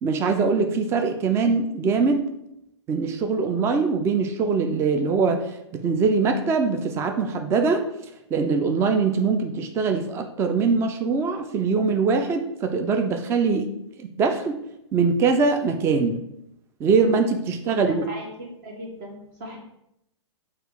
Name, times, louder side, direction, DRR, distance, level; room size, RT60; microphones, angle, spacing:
voice 1, 0.0-2.3 2.9-5.5 5.7-7.8 8.3-13.7 14.0-14.6 14.9-16.2 16.8-18.1, right 4 dB, 15° right, 6 dB, 0.4 m, -22 dB
voice 2, 17.7-19.6, right 1 dB, 40° right, -1 dB, 1.0 m, -39 dB
4.7 x 2.4 x 4.6 m, 0.81 s
hypercardioid pair, 120°, 15 cm